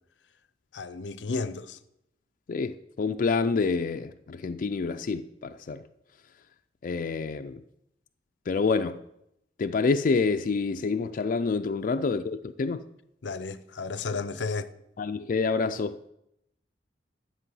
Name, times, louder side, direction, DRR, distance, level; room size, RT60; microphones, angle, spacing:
voice 1, 0.7-1.8 13.2-14.7, left 4 dB, 85° left, 0.6 m, -33 dB
voice 2, 2.5-5.8 6.8-7.6 8.5-9.0 9.6-12.8 15.0-16.1, left 4 dB, 50° left, 0.4 m, -27 dB
11.0 x 7.6 x 5.4 m
head